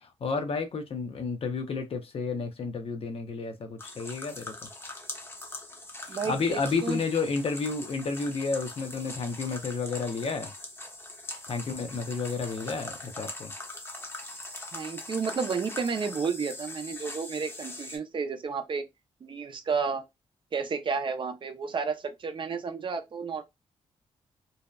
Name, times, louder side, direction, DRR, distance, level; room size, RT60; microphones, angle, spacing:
voice 1, 0.0-4.5 6.1-10.5 11.5-13.5, left 4 dB, 55° left, 0.6 m, -31 dB
sound 1, 3.8-18.0, left 2 dB, 20° left, 0.7 m, -42 dB
voice 2, 6.1-7.0 14.7-18.8 19.2-20.0 20.5-23.4, right 5 dB, 45° right, 0.5 m, -31 dB
2.7 x 2.1 x 2.2 m
cardioid pair, 85°, 12 cm